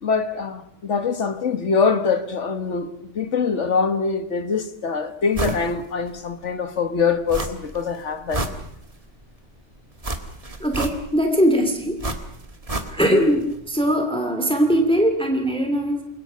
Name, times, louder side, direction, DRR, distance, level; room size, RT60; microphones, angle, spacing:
voice 1, 0.0-8.4, left 5 dB, 80° left, 1.9 m, -24 dB
sound 1, 5.3-5.7 6.1-6.2 7.3-7.8 8.1-9.1 10.0-11.3 12.0-13.3 13.5-13.6, right 2 dB, 30° right, 1.9 m, -29 dB
voice 2, 10.6-12.0 12.9-16.0, equal, 5° left, 2.6 m, -20 dB
29.0 x 22.5 x 5.7 m
omnidirectional pair, 1.2 m